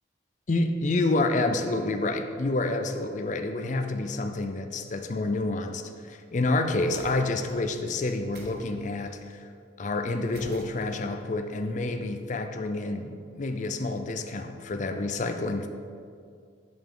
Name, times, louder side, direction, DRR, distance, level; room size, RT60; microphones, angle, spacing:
voice 1, 0.5-9.5 9.8-15.7, left 2 dB, 40° left, 6 dB, 0.4 m, -28 dB
sound 1, 6.8-7.6 8.3-9.3 10.3-11.2, right 1 dB, 55° right, 1.2 m, -48 dB
8.1 x 7.0 x 3.8 m, 2.2 s
head